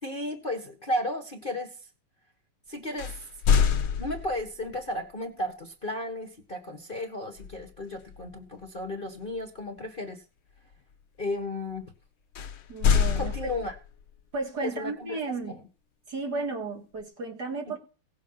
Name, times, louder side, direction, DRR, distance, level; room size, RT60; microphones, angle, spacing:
voice 1, 0.0-1.9 2.7-3.3 4.0-10.2 11.2-11.9 13.1-13.7 14.6-15.6, left 1 dB, 30° left, 1.3 m, -34 dB
sound 1, 3.0-4.6 7.4-7.7 8.1-8.3 12.3-14.0, left 7 dB, 70° left, 1.8 m, -25 dB
voice 2, 12.7-13.3 14.3-15.6 16.1-17.8, right 3 dB, 50° right, 2.4 m, -33 dB
17.5 x 7.3 x 5.7 m
omnidirectional pair, 2.4 m